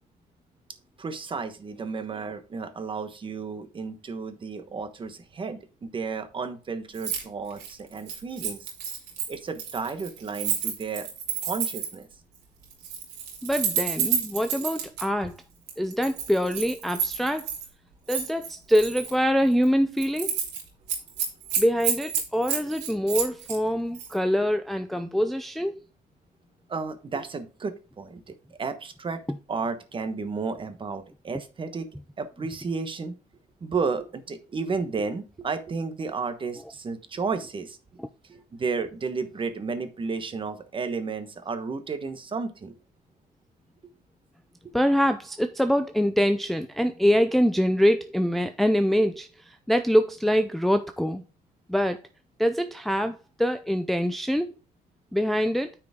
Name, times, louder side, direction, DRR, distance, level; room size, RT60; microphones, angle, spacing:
voice 1, 1.0-8.7 9.3-11.1 11.4-12.1 14.6-14.7 15.2-15.3 26.7-29.2 29.5-31.9 32.2-33.1 33.6-37.8 38.3-42.7, right 4 dB, 30° right, 1.2 m, -32 dB
Keys jangling, 6.9-7.2 7.5-12.0 12.7-15.0 15.7-17.7 18.1-19.1 19.5-19.7 20.0-20.6 20.9-23.6 23.9-24.1, right 7 dB, 90° right, 2.7 m, -30 dB
voice 2, 13.4-15.4 15.8-17.5 18.1-20.3 21.6-25.8 44.7-51.2 51.7-52.0 52.4-54.5 55.1-55.7, equal, ahead, 0.4 m, -24 dB
9.4 x 4.9 x 3.6 m
cardioid pair, 110°, 17 cm